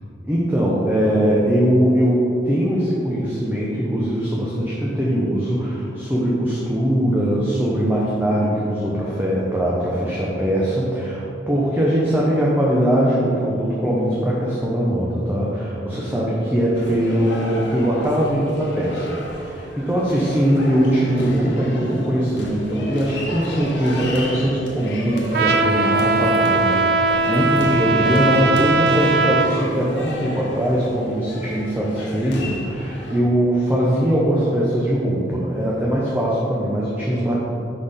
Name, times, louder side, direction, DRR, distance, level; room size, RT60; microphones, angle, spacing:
voice 1, 0.3-37.3, equal, 10° right, -6 dB, 0.6 m, -21 dB
sound 1, 16.7-33.2, equal, 80° left, 1.0 m, -32 dB
Trumpet, 25.3-29.5, right 3 dB, 60° right, 0.3 m, -19 dB
5.6 x 4.2 x 5.0 m, 2.7 s
head